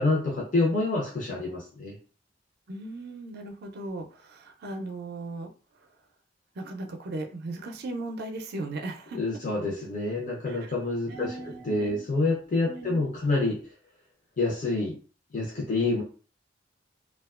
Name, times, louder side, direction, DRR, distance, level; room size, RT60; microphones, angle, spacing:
voice 1, 0.0-2.0 9.1-11.3 11.6-13.6 14.4-14.9 15.3-16.0, left 2 dB, 45° left, -3 dB, 0.6 m, -27 dB
voice 2, 2.7-5.5 5.8-5.9 6.5-9.2 10.5-10.7 11.1-12.0 12.7-13.1, right 2 dB, 60° right, 5 dB, 0.4 m, -37 dB
2.8 x 2.2 x 2.3 m, 0.38 s
head